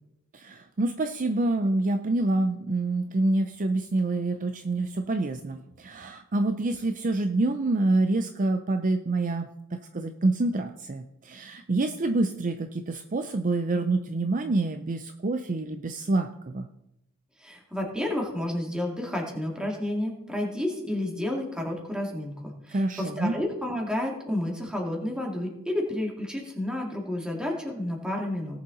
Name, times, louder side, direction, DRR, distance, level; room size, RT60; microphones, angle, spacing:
voice 1, 0.3-16.7 22.7-23.3, right 2 dB, 40° right, 7 dB, 0.5 m, -27 dB
voice 2, 17.4-28.6, left 1 dB, 5° right, 0 dB, 2.3 m, -31 dB
18.5 x 6.9 x 3.9 m, 0.83 s
head